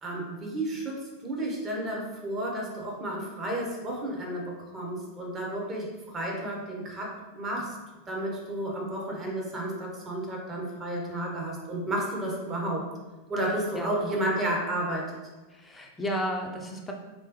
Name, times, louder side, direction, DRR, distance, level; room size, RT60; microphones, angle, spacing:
voice 1, 0.0-5.9 6.1-7.8 8.1-12.9 13.3-15.2, right 1 dB, 20° right, -2 dB, 1.0 m, -32 dB
voice 2, 13.4-14.1 15.5-16.9, equal, 10° left, 1 dB, 0.6 m, -34 dB
3.6 x 3.3 x 2.9 m, 1.2 s
figure-of-eight pair, 90°, 0 cm